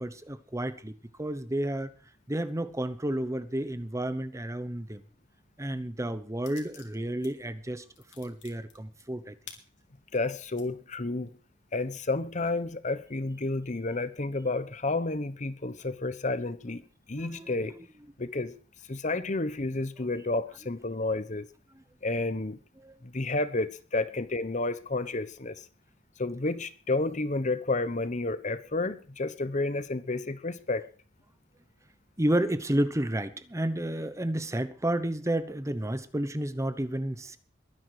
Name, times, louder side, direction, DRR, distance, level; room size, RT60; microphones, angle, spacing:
voice 1, 0.0-1.9 2.3-5.0 5.6-7.8 8.2-9.4 17.1-17.9 21.7-21.8 22.8-22.9 32.2-37.4, right 1 dB, 15° right, 1.0 m, -31 dB
sound 1, 6.4-7.3 7.6-10.7 11.2-11.3 11.7-12.6, left 9 dB, 80° left, 3.4 m, -51 dB
voice 2, 10.1-11.3 11.7-16.8 17.1-17.7 18.2-18.5 18.9-21.5 22.0-22.6 23.0-25.6 26.2-30.9, left 2 dB, 40° left, 1.1 m, -31 dB
22.0 x 10.0 x 4.9 m
head